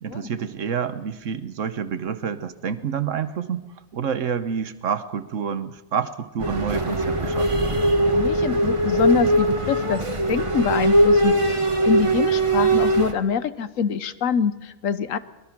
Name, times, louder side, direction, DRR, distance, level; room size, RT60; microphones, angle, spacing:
voice 1, 0.0-3.6 3.9-7.6, right 7 dB, 75° right, 12 dB, 1.3 m, -28 dB
sound 1, 6.4-13.1, right 1 dB, 25° right, 1.6 m, -20 dB
voice 2, 8.0-10.0 10.3-15.2, left 7 dB, 90° left, 14 dB, 1.3 m, -25 dB
24.0 x 21.0 x 6.0 m, 1.0 s
omnidirectional pair, 1.3 m